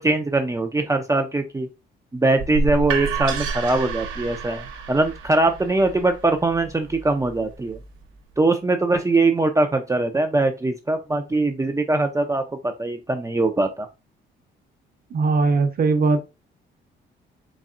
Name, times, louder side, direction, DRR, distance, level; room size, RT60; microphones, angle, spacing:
voice 1, 0.0-1.7 2.1-7.8 8.4-13.9, right 2 dB, 15° right, 0.5 m, -22 dB
sound 1, 2.4-8.2, right 4 dB, 85° right, 0.7 m, -30 dB
voice 2, 15.1-16.2, right 4 dB, 50° right, 0.9 m, -19 dB
4.1 x 3.4 x 2.5 m
cardioid pair, 90°, 20 cm